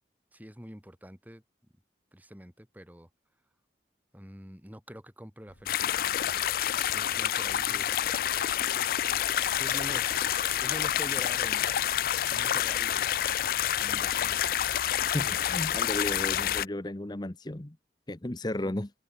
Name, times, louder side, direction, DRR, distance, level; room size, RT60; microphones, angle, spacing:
voice 1, 0.3-1.4 2.1-3.1 4.1-6.4 6.9-8.1 9.6-10.2 10.6-11.7 12.3-13.2 13.8-14.4 14.7-15.0 18.6-18.8, equal, 10° right, 2.9 m, -45 dB
Bird, 5.5-11.4, left 1 dB, 85° left, 5.9 m, -62 dB
sound 1, 5.7-16.7, left 11 dB, 55° left, 0.3 m, -28 dB
voice 2, 15.1-17.8 18.1-18.9, left 1 dB, 25° left, 0.9 m, -34 dB
head